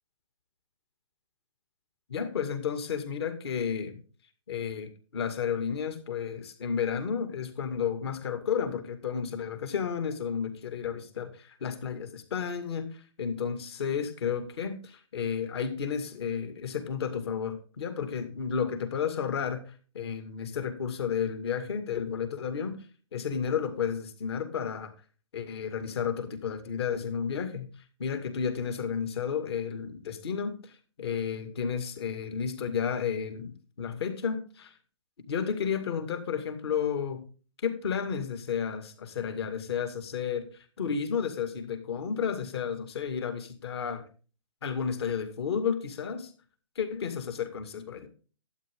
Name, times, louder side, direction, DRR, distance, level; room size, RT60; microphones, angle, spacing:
voice 1, 2.1-4.0 4.5-22.8 23.1-24.9 25.3-27.7 28.0-30.7 31.0-34.7 35.3-37.2 37.6-44.1 44.6-46.3 46.8-48.1, left 7 dB, 55° left, 8 dB, 2.3 m, -32 dB
12.0 x 8.7 x 3.7 m, 0.37 s
hypercardioid pair, 150°, 16 cm